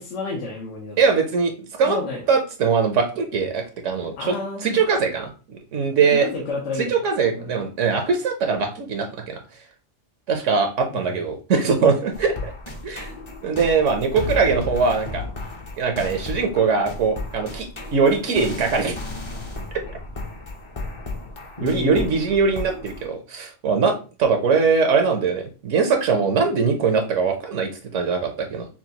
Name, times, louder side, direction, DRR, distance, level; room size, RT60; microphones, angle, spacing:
voice 1, 0.0-1.0 1.8-2.2 4.2-4.8 6.2-7.0 7.3-7.6 10.9-11.1 21.6-22.1, left 3 dB, 75° left, -1 dB, 1.2 m, -30 dB
voice 2, 1.0-2.0 2.3-4.3 4.6-6.3 6.9-9.4 10.3-12.5 12.8-13.1 13.4-15.2 15.8-19.0 21.6-28.7, right 5 dB, 75° right, 4 dB, 1.1 m, -21 dB
sound 1, 12.1-23.1, left 2 dB, 30° left, 0.6 m, -34 dB
5.9 x 2.3 x 2.8 m, 0.34 s
omnidirectional pair, 1.3 m